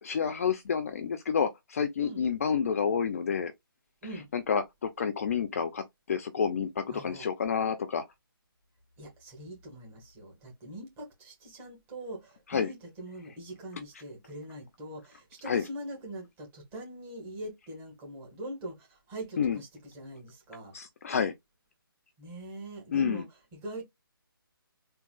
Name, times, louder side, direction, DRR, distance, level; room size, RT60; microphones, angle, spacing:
voice 1, 0.0-3.5 4.3-8.0 12.5-12.7 15.5-15.7 19.4-19.6 20.7-21.3 22.9-23.2, left 6 dB, 40° left, 0.4 m, -29 dB
voice 2, 6.9-7.3 9.0-20.7 22.2-23.2 23.5-23.8, right 1 dB, 15° right, 1.6 m, -43 dB
3.6 x 2.7 x 2.3 m
figure-of-eight pair, 155°, 12 cm